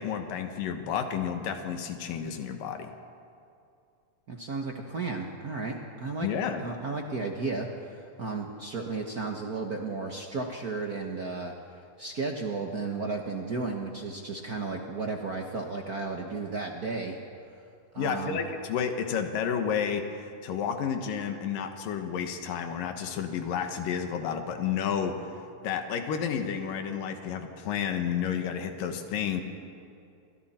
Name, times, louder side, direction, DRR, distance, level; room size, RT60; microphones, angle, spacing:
voice 1, 0.0-2.9 6.2-6.6 18.0-25.3 25.6-29.4, left 7 dB, 90° left, 5 dB, 3.0 m, -31 dB
voice 2, 4.3-6.3 6.6-11.5 12.0-17.2 17.9-18.4, right 3 dB, 70° right, 1 dB, 0.8 m, -34 dB
29.5 x 25.5 x 4.4 m, 2.5 s
omnidirectional pair, 3.8 m